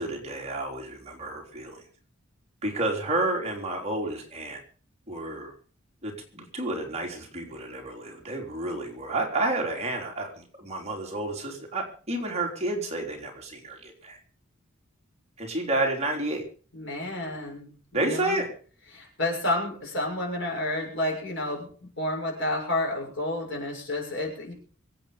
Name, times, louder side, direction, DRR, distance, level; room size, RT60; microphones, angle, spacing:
voice 1, 0.0-1.8 2.6-4.6 5.1-5.5 6.0-14.2 15.4-16.4 17.9-18.5, right 2 dB, 30° right, 0 dB, 3.7 m, -30 dB
voice 2, 16.7-18.4 18.9-24.5, left 1 dB, 60° left, 0 dB, 6.6 m, -30 dB
24.0 x 8.9 x 5.2 m, 0.43 s
head